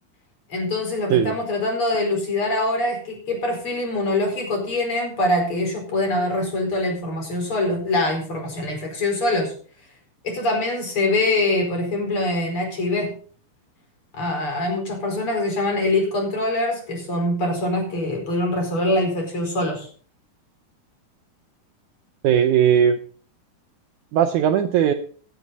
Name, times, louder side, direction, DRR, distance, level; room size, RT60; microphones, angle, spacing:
voice 1, 0.5-9.5 10.2-13.1 14.1-19.9, left 2 dB, 35° left, 2 dB, 5.3 m, -24 dB
voice 2, 22.2-23.0 24.1-24.9, right 9 dB, 85° right, 8 dB, 1.7 m, -18 dB
17.0 x 11.0 x 4.0 m, 0.43 s
omnidirectional pair, 4.4 m